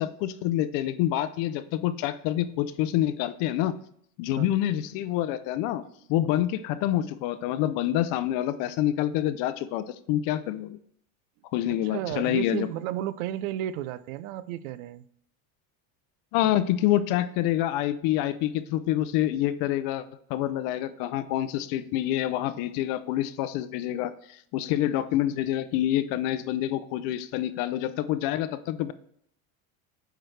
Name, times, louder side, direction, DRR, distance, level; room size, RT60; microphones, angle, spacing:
voice 1, 0.0-3.7 4.2-5.8 6.1-10.8 11.5-12.7 16.3-28.9, left 13 dB, 55° left, 0.5 m, -27 dB
voice 2, 11.7-15.0, right 12 dB, 90° right, 0.5 m, -33 dB
8.8 x 4.6 x 3.2 m
cardioid pair, 145°, 40 cm